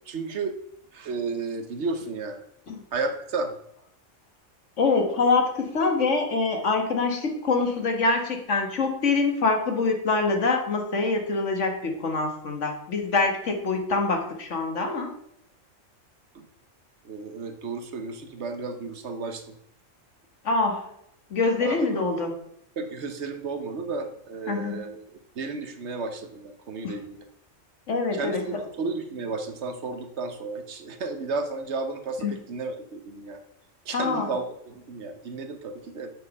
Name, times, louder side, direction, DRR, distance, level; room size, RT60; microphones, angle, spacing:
voice 1, 0.1-0.5 0.9-2.4 2.9-3.5 16.3-16.5 17.0-19.5 21.6-21.9 22.8-25.0 25.4-27.2 28.1-33.4 33.8-36.1, right 3 dB, 65° right, 8 dB, 1.1 m, -33 dB
voice 2, 4.8-15.1 20.5-20.8 21.3-22.4 24.5-24.8 26.8-27.0 27.9-28.6 32.2-32.3 33.9-34.3, left 3 dB, 70° left, 4 dB, 1.7 m, -25 dB
8.1 x 5.9 x 5.3 m, 0.74 s
omnidirectional pair, 1.3 m